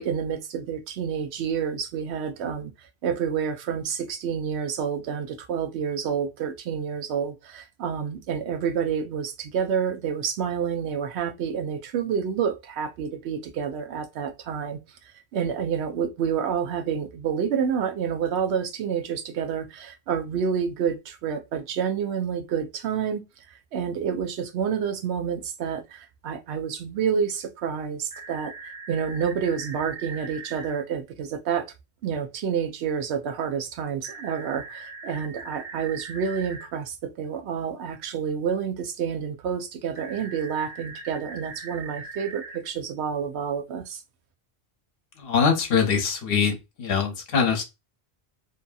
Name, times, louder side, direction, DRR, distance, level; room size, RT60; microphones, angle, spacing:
voice 1, 0.0-28.5 28.9-31.7 32.0-44.0, right 7 dB, 85° right, 0.8 m, -29 dB
sound 1, 28.1-30.7 34.0-36.7 40.0-42.6, right 4 dB, 5° right, 0.7 m, -40 dB
voice 2, 45.2-47.6, left 6 dB, 65° left, 0.9 m, -23 dB
2.7 x 2.6 x 2.2 m
omnidirectional pair, 1.1 m